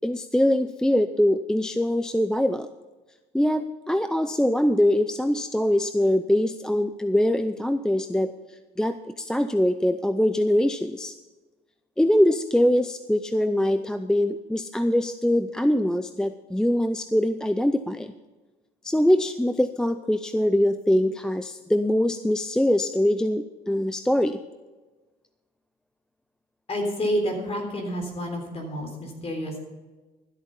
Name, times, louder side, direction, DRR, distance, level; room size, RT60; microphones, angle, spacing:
voice 1, 0.0-2.7 3.3-8.3 8.8-11.1 12.0-18.1 18.8-24.4, left 1 dB, 5° left, 10 dB, 0.4 m, -23 dB
voice 2, 26.7-29.6, equal, 35° left, 3 dB, 3.7 m, -29 dB
13.0 x 8.4 x 5.5 m, 1.2 s
cardioid pair, 110°, 17 cm